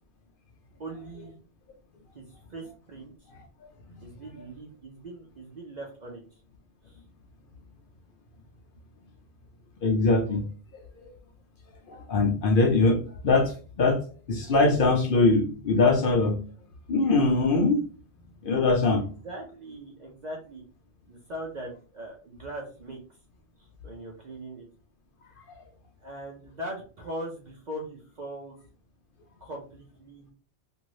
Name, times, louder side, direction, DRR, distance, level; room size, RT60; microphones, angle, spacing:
voice 1, 0.8-1.3 2.2-2.3 2.5-3.1 4.0-6.2 18.9-20.6 21.1-23.0 23.8-24.7 26.0-28.5 29.4-30.3, right 1 dB, 50° right, -1 dB, 0.7 m, -40 dB
voice 2, 9.8-10.4 11.9-13.0 13.2-13.5 13.8-14.0 14.3-16.4 16.9-17.8 18.4-19.0, left 3 dB, 60° left, 2 dB, 0.7 m, -22 dB
2.6 x 2.6 x 3.0 m, 0.37 s
omnidirectional pair, 1.1 m